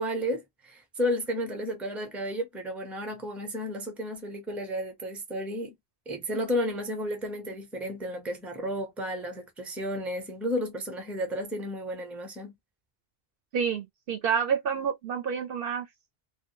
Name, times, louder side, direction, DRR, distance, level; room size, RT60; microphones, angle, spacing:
voice 1, 0.0-5.7 6.1-12.5, equal, ahead, 0.5 m, -32 dB
voice 2, 13.5-15.9, right 7 dB, 65° right, 0.7 m, -28 dB
2.1 x 2.1 x 3.0 m
omnidirectional pair, 1.1 m